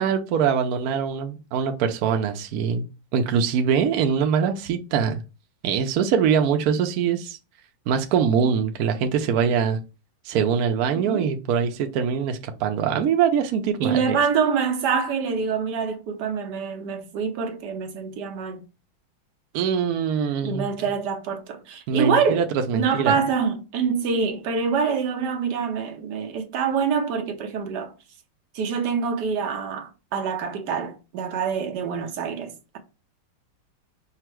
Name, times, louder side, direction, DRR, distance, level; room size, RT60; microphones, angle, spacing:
voice 1, 0.0-5.2 5.6-7.4 7.9-9.8 10.3-14.2 19.5-20.7 21.9-23.2, right 7 dB, 80° right, 0.8 m, -23 dB
voice 2, 10.9-11.3 13.8-18.6 20.4-22.4 22.7-27.9 28.5-32.8, right 6 dB, 65° right, 1.2 m, -25 dB
5.5 x 2.0 x 4.4 m
omnidirectional pair, 2.2 m